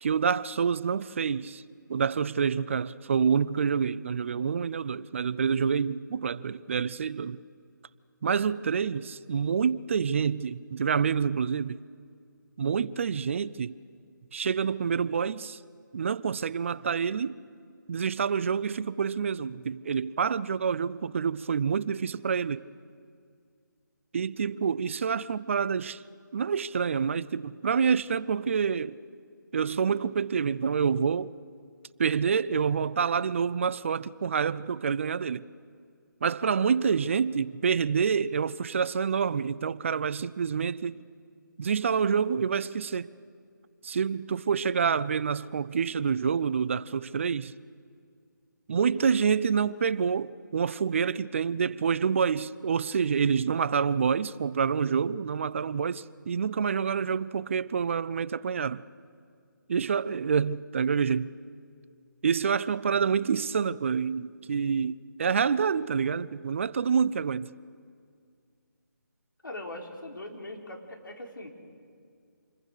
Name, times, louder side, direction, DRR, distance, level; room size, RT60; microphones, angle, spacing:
voice 1, 0.0-1.6 1.9-7.4 8.2-11.8 12.6-13.8 14.3-15.6 15.9-17.4 17.9-22.7 24.1-26.0 26.3-29.0 29.5-31.3 32.0-35.5 36.2-41.0 41.6-43.1 43.8-47.5 48.7-58.8 59.7-61.3 62.2-67.5, right 6 dB, 40° right, 0.5 m, -27 dB
voice 2, 69.4-71.5, left 1 dB, 85° left, 4.1 m, -40 dB
27.0 x 21.5 x 6.7 m
figure-of-eight pair, 160°, 11 cm